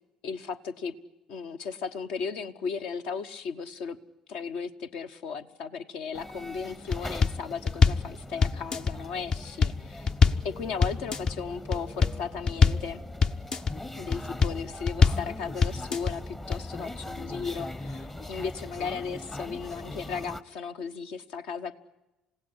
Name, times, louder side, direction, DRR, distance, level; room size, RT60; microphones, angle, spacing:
voice 1, 0.2-0.9 1.3-4.0 4.3-10.1 10.4-13.0 14.0-21.7, left 5 dB, 55° left, 9 dB, 1.2 m, -36 dB
sound 1, 6.1-20.4, left 1 dB, 15° left, 1.1 m, -41 dB
sound 2, 6.9-7.4 7.7-8.1 8.4-8.9 9.3-9.8 10.1-10.5 10.8-11.3 11.7-12.2 12.5-12.9 13.2-13.7 14.1-14.6 14.9-15.3 15.6-16.1 16.5-16.6, left 5 dB, 35° left, 0.8 m, -22 dB
27.5 x 17.0 x 9.6 m, 1.0 s
figure-of-eight pair, 55°, 2 cm